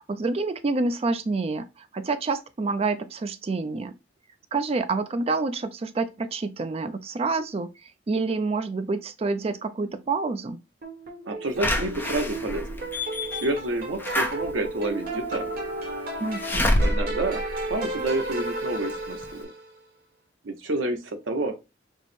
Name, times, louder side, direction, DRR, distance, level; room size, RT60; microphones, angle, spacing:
voice 1, 0.0-3.9 4.5-10.6 16.2-16.7, right 3 dB, 30° right, 0.3 m, -28 dB
sound 1, 10.8-19.7, right 2 dB, 50° right, 1.1 m, -34 dB
voice 2, 11.3-12.9 13.3-15.6 16.7-17.4 17.7-19.5 20.4-21.6, right 2 dB, 85° right, 0.8 m, -29 dB
Slam / Alarm, 11.6-18.4 18.9-19.0 19.2-19.3, left 1 dB, 10° left, 0.6 m, -28 dB
4.6 x 2.1 x 4.1 m
head